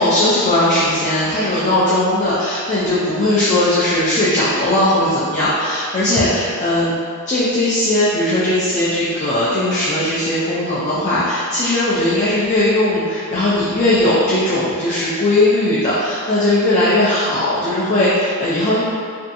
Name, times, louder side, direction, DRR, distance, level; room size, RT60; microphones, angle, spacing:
voice 1, 0.0-6.9 7.3-18.9, left 1 dB, 35° left, -10 dB, 0.3 m, -18 dB
2.6 x 2.3 x 2.5 m, 2.2 s
head